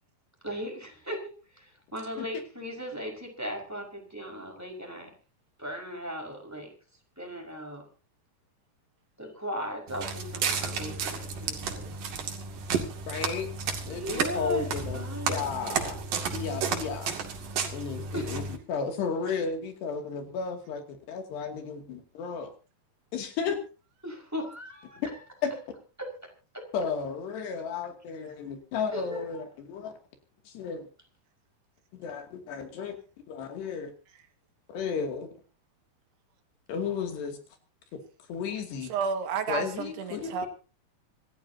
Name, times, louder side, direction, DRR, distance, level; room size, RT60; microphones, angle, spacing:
voice 1, 0.4-5.1 5.6-6.7 7.2-7.8 9.2-11.9 13.9-14.7 14.9-15.5 18.1-18.4 24.0-25.2 26.0-26.1 26.5-26.6 28.9-29.2, equal, 5° right, 4.8 m, -37 dB
Walk footsteps, 9.9-18.6, right 5 dB, 55° right, 3.8 m, -32 dB
voice 2, 13.1-13.5 13.9-16.0 16.3-17.1 17.7-22.5 23.1-23.6 25.0-25.1 25.4-25.5 26.7-29.9 30.5-30.9 32.0-33.0 33.3-33.9 34.7-35.3 36.7-37.4 37.9-38.0 38.3-38.9 39.5-40.5, left 6 dB, 80° left, 4.7 m, -33 dB
voice 3, 38.9-40.5, right 6 dB, 75° right, 3.8 m, -31 dB
26.5 x 14.5 x 2.8 m
omnidirectional pair, 4.8 m